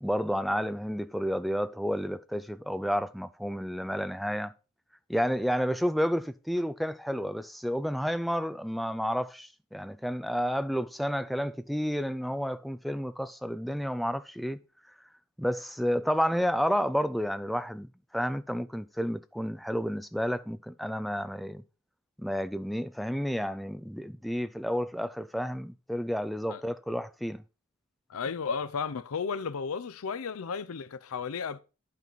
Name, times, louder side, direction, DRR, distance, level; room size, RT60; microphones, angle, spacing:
voice 1, 0.0-4.5 5.1-14.6 15.4-17.9 18.1-21.6 22.2-27.4, equal, ahead, 0.3 m, -31 dB
voice 2, 28.1-31.6, left 5 dB, 80° left, 0.5 m, -34 dB
10.5 x 4.0 x 4.5 m
head